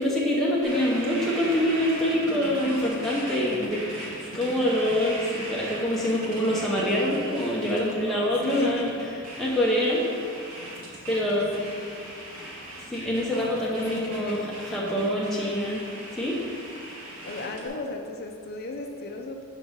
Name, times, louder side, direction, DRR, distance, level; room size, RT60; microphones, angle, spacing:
voice 1, 0.0-3.8 4.3-8.9 9.4-10.0 11.1-11.6 12.9-14.4 14.7-15.8 16.2-16.4, left 1 dB, ahead, -6 dB, 0.7 m, -25 dB
sound 1, 0.6-17.7, right 1 dB, 75° right, 1.4 m, -38 dB
voice 2, 8.4-8.9 11.6-12.1 13.7-14.5 17.2-19.4, left 2 dB, 45° left, 3 dB, 0.5 m, -36 dB
5.3 x 5.0 x 5.4 m, 2.4 s
head